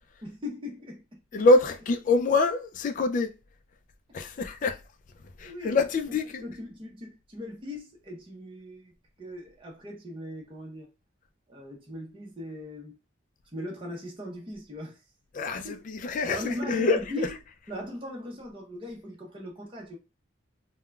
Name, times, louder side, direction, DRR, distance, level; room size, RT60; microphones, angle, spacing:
voice 1, 0.2-1.5 4.1-4.2 5.4-5.8 6.1-8.9 9.2-10.9 11.5-13.0 13.5-15.0 15.6-15.8 16.2-17.4 17.7-20.0, left 1 dB, 25° right, 0.7 m, -39 dB
voice 2, 1.3-3.3 4.1-4.8 5.4-6.4 15.3-17.3, left 2 dB, 40° left, 0.3 m, -25 dB
3.7 x 2.1 x 2.3 m
head